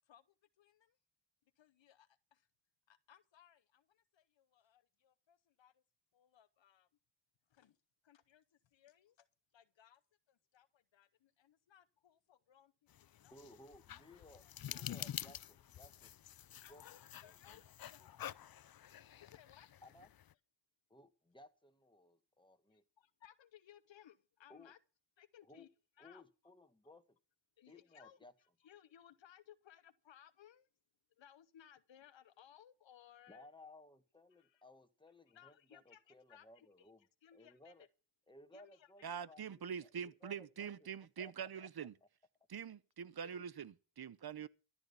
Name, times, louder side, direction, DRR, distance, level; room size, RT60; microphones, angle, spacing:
voice 1, 0.6-1.0 1.6-2.5 2.9-5.8 6.1-6.9 7.5-7.8 8.0-9.3 9.5-10.0 10.3-12.7 13.0-13.4 13.9-14.8 16.4-18.0 19.2-19.7 22.7-24.8 25.2-25.7 26.0-26.2 27.6-28.2 28.6-30.7 31.2-33.5 34.3-34.6 35.3-36.9 37.2-37.7 38.5-39.2 43.2-43.5, left 10 dB, 80° left, 0.9 m, -63 dB
sound 1, 12.9-20.3, left 10 dB, 55° left, 0.6 m, -49 dB
voice 2, 13.3-16.2 16.7-16.8 17.2-17.6 18.0-18.1 19.8-20.1 20.9-22.8 24.5-24.7 25.4-25.7 26.0-27.2 27.7-28.3 33.3-37.1 37.3-37.9 38.3-40.9 41.2-41.7, left 1 dB, 10° left, 1.8 m, -60 dB
voice 3, 39.0-41.9 42.5-44.5, right 7 dB, 55° right, 0.9 m, -45 dB
13.5 x 9.2 x 5.6 m
cardioid pair, 50°, 44 cm